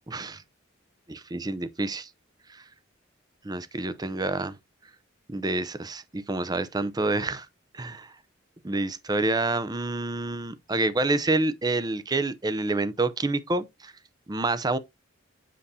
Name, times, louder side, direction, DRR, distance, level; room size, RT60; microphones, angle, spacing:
voice 1, 0.1-0.4 1.1-2.1 2.5-2.6 3.4-4.6 5.3-7.5 7.7-8.1 8.6-13.9 14.3-14.8, right 2 dB, 20° right, 0.6 m, -28 dB
7.6 x 6.7 x 2.7 m
head